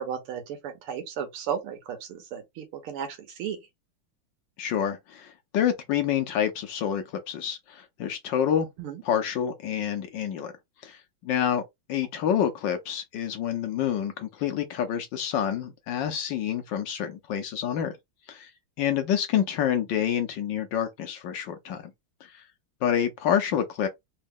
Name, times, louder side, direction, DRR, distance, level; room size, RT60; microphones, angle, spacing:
voice 1, 0.0-3.6 8.8-9.0, right 8 dB, 80° right, 1.9 m, -34 dB
voice 2, 4.6-8.7 9.0-10.5 10.8-11.6 11.9-17.9 18.3-18.5 18.8-21.8 22.2-22.3 22.8-23.9, left 9 dB, 70° left, 1.1 m, -28 dB
4.2 x 2.2 x 3.5 m
omnidirectional pair, 2.4 m